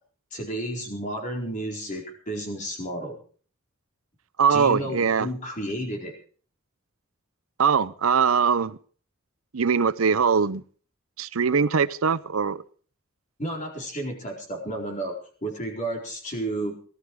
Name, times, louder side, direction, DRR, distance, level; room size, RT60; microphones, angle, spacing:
voice 1, 0.3-3.2 4.5-6.1 13.4-15.2 15.4-16.8, right 1 dB, 35° left, 4.3 m, -32 dB
voice 2, 4.4-5.3 7.6-8.8 9.5-10.6 11.2-12.6, right 6 dB, 85° right, 0.7 m, -22 dB
18.5 x 12.5 x 4.8 m
head